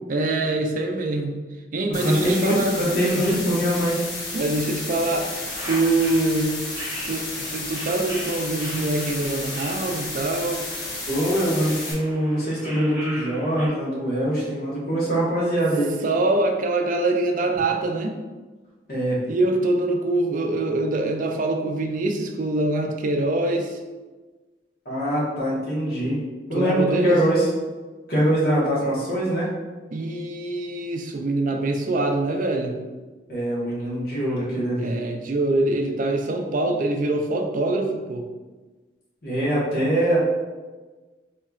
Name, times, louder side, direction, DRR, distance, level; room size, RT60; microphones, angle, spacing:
voice 1, 0.1-1.4 1.7-2.8 3.1-3.4 4.3-5.3 5.7-6.6 7.1-10.6 16.0-18.2 19.3-23.8 26.5-27.2 29.9-32.8 34.8-38.3, right 2 dB, 50° right, 3 dB, 0.4 m, -24 dB
sound 1, 1.9-11.9, left 2 dB, 80° left, 1.0 m, -32 dB
voice 2, 1.9-4.0 11.1-15.9 18.9-19.2 24.8-26.2 26.5-27.5 28.1-29.5 33.3-34.9 39.2-40.2, right 1 dB, 60° left, -7 dB, 1.4 m, -23 dB
sound 2, 5.1-13.7, equal, 15° right, 1.2 m, -40 dB
4.2 x 2.8 x 2.4 m, 1.3 s
head